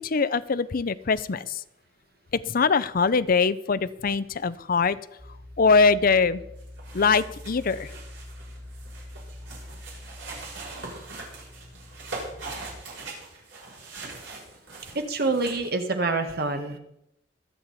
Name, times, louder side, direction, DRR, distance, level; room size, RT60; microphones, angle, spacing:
voice 1, 0.0-1.6 2.5-5.0 5.6-6.4 6.9-7.9, left 4 dB, 50° left, 15 dB, 0.6 m, -22 dB
sound 1, 5.2-12.8, left 1 dB, 20° right, 1.7 m, -45 dB
sound 2, 6.6-15.7, right 3 dB, 80° right, 7.2 m, -41 dB
voice 2, 14.9-16.8, right 3 dB, 55° right, 6 dB, 1.6 m, -26 dB
25.0 x 8.4 x 4.1 m, 0.82 s
head